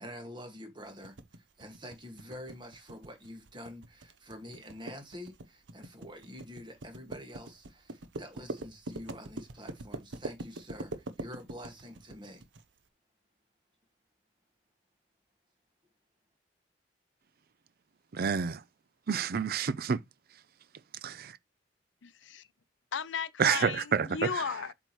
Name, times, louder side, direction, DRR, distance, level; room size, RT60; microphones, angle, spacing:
voice 1, 0.0-12.4, equal, 25° right, 1.9 m, -47 dB
sound 1, 1.0-12.6, right 2 dB, 80° right, 0.9 m, -43 dB
voice 2, 18.1-18.6 19.1-20.0 21.0-21.4 23.4-24.4, right 6 dB, 55° right, 0.5 m, -29 dB
voice 3, 22.0-22.5 22.9-24.7, left 6 dB, 85° left, 0.6 m, -35 dB
7.7 x 4.8 x 3.1 m
head